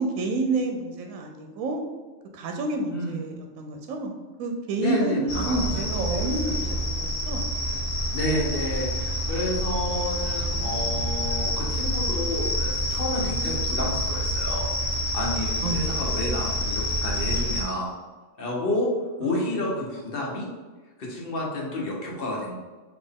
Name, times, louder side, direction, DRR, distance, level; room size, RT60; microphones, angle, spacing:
voice 1, 0.0-1.8 2.3-7.5 10.4-11.1 15.6-16.1 19.2-19.4, right 3 dB, 85° right, 3 dB, 1.0 m, -30 dB
voice 2, 4.8-6.3 8.1-14.6 15.1-17.9 18.4-18.9 19.2-20.5 21.0-22.6, left 1 dB, 50° left, -2 dB, 1.0 m, -30 dB
sound 1, 5.3-17.6, equal, 80° left, 1.4 m, -27 dB
4.3 x 2.9 x 3.5 m, 1.3 s
omnidirectional pair, 1.4 m